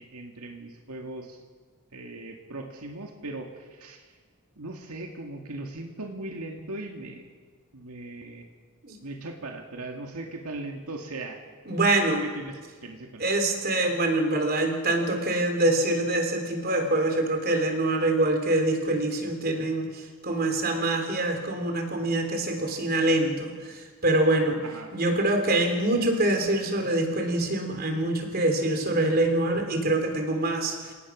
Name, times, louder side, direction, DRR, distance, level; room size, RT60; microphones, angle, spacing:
voice 1, 0.0-1.4 1.9-4.1 4.6-7.3 7.7-8.4 9.0-11.4 12.2-13.3 24.6-24.9, right 2 dB, 90° right, 2 dB, 2.1 m, -39 dB
voice 2, 11.7-12.2 13.2-23.5 24.0-24.6 24.9-30.8, right 2 dB, 45° right, 4 dB, 3.6 m, -25 dB
28.5 x 18.0 x 6.2 m, 1.5 s
head